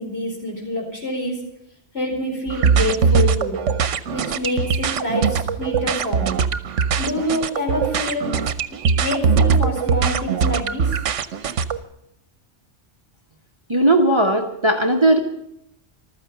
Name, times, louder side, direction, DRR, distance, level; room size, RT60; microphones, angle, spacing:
voice 1, 0.0-1.4 1.9-3.6 4.1-6.4 7.0-8.3 8.7-10.9, left 1 dB, 55° left, 0 dB, 4.8 m, -26 dB
sound 1, 2.5-11.8, right 6 dB, 85° right, 1.1 m, -21 dB
voice 2, 13.7-15.2, right 1 dB, 25° right, 3 dB, 1.3 m, -17 dB
15.0 x 13.0 x 6.9 m, 0.78 s
omnidirectional pair, 1.3 m